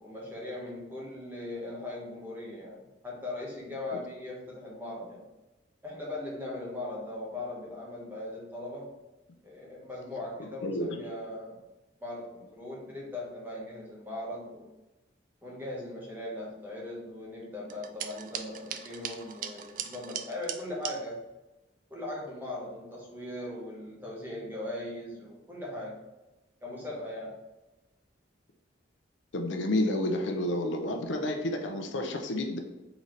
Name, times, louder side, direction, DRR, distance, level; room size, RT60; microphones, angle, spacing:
voice 1, 0.0-5.3 5.8-9.0 9.4-11.6 12.0-14.7 15.4-21.2 21.9-26.0 26.6-27.4, left 1 dB, 10° right, -5 dB, 1.1 m, -39 dB
sound 1, 17.7-21.0, right 9 dB, 45° right, 0.3 m, -39 dB
voice 2, 29.3-32.6, left 1 dB, 75° left, 4 dB, 0.6 m, -30 dB
4.1 x 3.9 x 3.1 m, 1.0 s
head